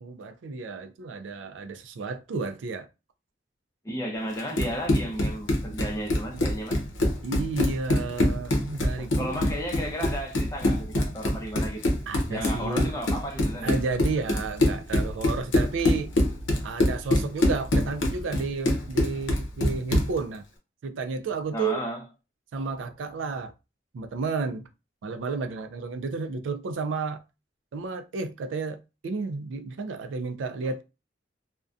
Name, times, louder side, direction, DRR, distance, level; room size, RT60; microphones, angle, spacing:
voice 1, 0.0-2.9 6.3-6.4 7.2-9.4 12.1-12.9 13.6-16.1 16.6-20.4 20.8-21.9 22.5-23.5 23.9-24.7 25.0-27.2 27.7-30.8, right 4 dB, 90° right, 0.4 m, -32 dB
voice 2, 3.8-6.8 9.0-11.9 12.3-13.8 21.5-22.0, equal, 20° left, 0.5 m, -33 dB
Run, 4.4-20.2, left 1 dB, 90° left, 0.6 m, -25 dB
2.5 x 2.1 x 2.3 m
head